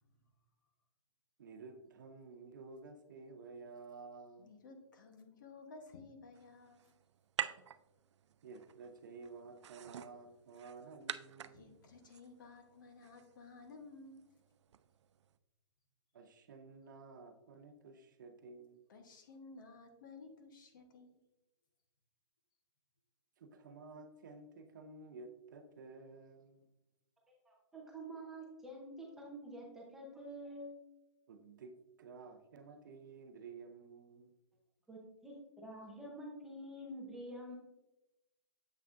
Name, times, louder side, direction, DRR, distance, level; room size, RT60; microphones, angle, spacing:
voice 1, 1.4-4.5 8.4-11.7 16.1-18.8 23.4-26.7 31.3-34.3, right 4 dB, 45° right, 7 dB, 0.6 m, -53 dB
voice 2, 4.4-6.9 11.5-14.3 18.9-21.2, left 3 dB, 45° left, 5 dB, 0.9 m, -55 dB
sound 1, 6.3-15.4, right 9 dB, 85° right, 0.4 m, -48 dB
voice 3, 27.3-30.7 34.9-37.6, right 1 dB, 5° right, -3 dB, 0.7 m, -48 dB
7.4 x 5.7 x 2.4 m, 0.94 s
hypercardioid pair, 175°, 15 cm